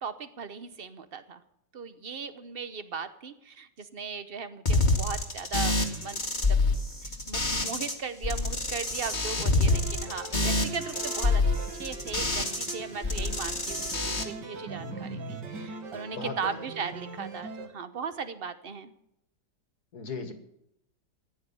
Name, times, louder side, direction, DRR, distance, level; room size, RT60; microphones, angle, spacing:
voice 1, 0.0-1.4 1.7-6.2 6.5-6.6 7.0-11.4 11.8-18.9, right 5 dB, 40° right, 12 dB, 1.0 m, -38 dB
sound 1, 4.6-7.9 8.2-12.7 13.0-14.2, left 2 dB, 25° left, 2.1 m, -27 dB
sound 2, 9.7-17.7, right 4 dB, 80° right, 2.4 m, -40 dB
voice 2, 16.1-16.6 19.9-20.3, left 4 dB, 65° left, 7 dB, 2.2 m, -37 dB
15.0 x 10.5 x 7.1 m, 0.78 s
omnidirectional pair, 1.8 m